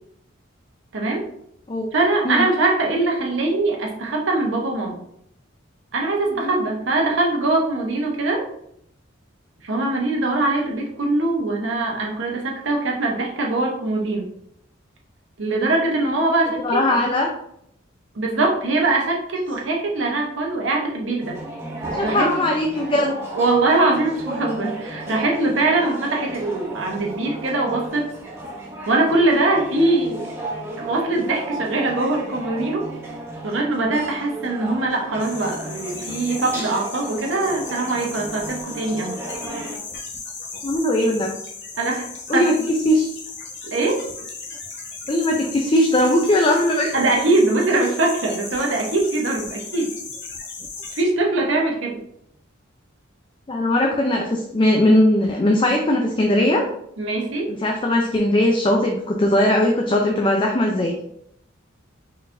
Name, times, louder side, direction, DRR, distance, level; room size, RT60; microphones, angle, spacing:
voice 1, 0.9-1.3 1.9-5.0 5.9-8.5 9.6-14.3 15.4-17.0 18.1-21.4 22.0-22.5 23.3-28.1 28.9-30.3 30.8-32.8 33.4-39.2 41.8-42.5 43.6-44.0 46.9-49.9 50.9-52.0 57.0-57.6, right 2 dB, 65° right, 0 dB, 0.9 m, -22 dB
voice 2, 6.3-6.6 16.6-17.3 21.9-23.2 40.6-41.3 42.3-43.1 45.1-46.9 53.5-56.6 57.5-60.9, left 1 dB, 25° left, 1 dB, 0.4 m, -19 dB
sound 1, 21.2-39.8, right 1 dB, 15° right, 0.7 m, -34 dB
sound 2, 35.2-51.0, left 4 dB, 55° left, 0.9 m, -36 dB
4.3 x 4.0 x 2.6 m, 0.72 s
head